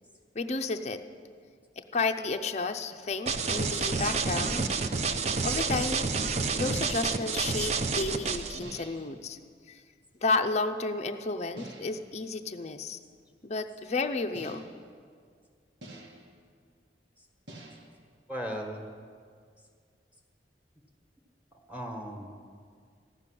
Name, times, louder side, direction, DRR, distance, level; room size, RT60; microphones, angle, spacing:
voice 1, 0.3-1.0 1.8-4.7 5.4-6.0 6.5-9.4 9.7-9.8 10.2-13.0 13.4-14.7, left 3 dB, 40° left, 7 dB, 0.6 m, -32 dB
sound 1, 3.3-8.6, right 4 dB, 40° right, 0.6 m, -29 dB
sound 2, 4.6-5.1 6.6-7.2 8.6-9.2 11.6-12.1 14.3-15.0 15.8-16.4 17.5-18.0, right 1 dB, 75° right, 1.6 m, -46 dB
voice 2, 18.3-18.9 21.7-22.3, equal, 10° right, 2 dB, 1.4 m, -36 dB
14.5 x 6.9 x 9.9 m, 2.1 s
head